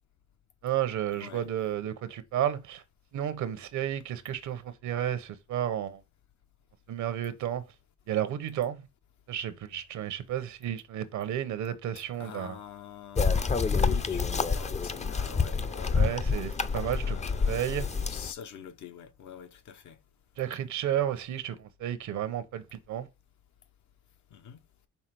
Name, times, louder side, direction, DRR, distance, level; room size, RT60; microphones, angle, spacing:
voice 1, 0.6-2.8 3.1-6.0 6.9-7.6 8.1-8.8 9.3-12.6 15.9-17.2 17.5-17.9 20.4-23.1, right 10 dB, 70° right, 0.9 m, -32 dB
voice 2, 12.2-16.2 17.0-20.0 24.3-24.6, left 8 dB, 70° left, 0.9 m, -45 dB
sound 1, 13.2-18.3, left 5 dB, 25° left, 0.5 m, -28 dB
5.6 x 3.6 x 4.7 m
cardioid pair, 90°, 30 cm